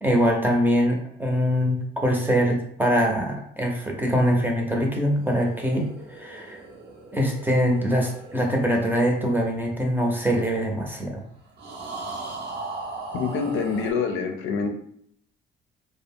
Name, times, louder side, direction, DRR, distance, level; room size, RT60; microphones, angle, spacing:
voice 1, 0.0-6.6 7.1-11.2, equal, 10° right, 0 dB, 0.7 m, -23 dB
sound 1, 5.0-10.5 11.6-13.9, right 3 dB, 60° right, 0.9 m, -39 dB
voice 2, 13.1-14.7, left 5 dB, 80° left, 5 dB, 0.5 m, -26 dB
2.4 x 2.1 x 3.6 m, 0.66 s
cardioid pair, 90°, 20 cm